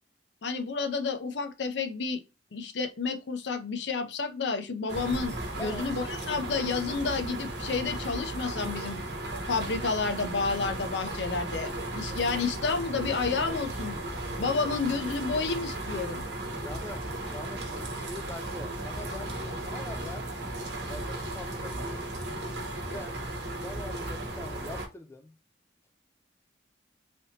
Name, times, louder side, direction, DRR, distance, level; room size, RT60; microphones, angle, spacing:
voice 1, 0.4-2.2 2.5-9.0 9.5-14.0 14.4-16.2, left 4 dB, 70° left, 0.6 m, -30 dB
sound 1, 4.9-24.9, right 1 dB, 65° right, 0.9 m, -35 dB
voice 2, 16.5-20.3 20.9-22.1 22.9-23.2 23.6-25.3, left 1 dB, 15° left, 0.3 m, -43 dB
3.3 x 2.9 x 2.7 m
head